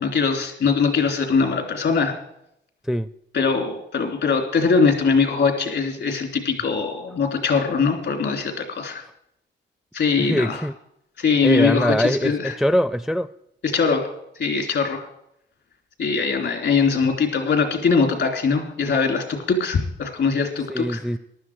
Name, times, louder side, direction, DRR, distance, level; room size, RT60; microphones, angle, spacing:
voice 1, 0.0-2.1 3.3-9.0 9.9-10.6 11.2-12.5 13.6-14.1 14.4-15.1 16.0-21.0, left 5 dB, 70° left, 3.2 m, -21 dB
voice 2, 10.2-10.7 11.4-13.3 20.7-21.2, equal, ahead, 0.4 m, -22 dB
14.5 x 12.0 x 4.8 m
cardioid pair, 120°, 19 cm